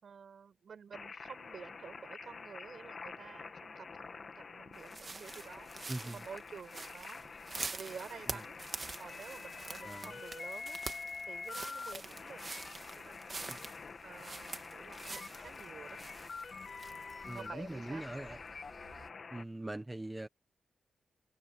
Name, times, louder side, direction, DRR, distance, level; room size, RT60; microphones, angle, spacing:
voice 1, 0.0-5.7 6.1-7.2 7.7-8.6 9.0-10.8 11.3-12.5 13.0-13.5 14.0-16.0 16.9-17.1 17.3-18.0, right 6 dB, 55° right, 5.7 m, -50 dB
sound 1, 0.9-19.4, left 4 dB, 45° left, 1.6 m, -47 dB
sound 2, 4.7-19.1, right 3 dB, 30° right, 1.7 m, -47 dB
voice 2, 5.9-6.2 8.3-8.4 9.8-10.1 13.5-13.6 17.3-18.4 19.3-20.3, right 1 dB, 15° right, 1.1 m, -42 dB
wide cardioid pair, 120°, 0 cm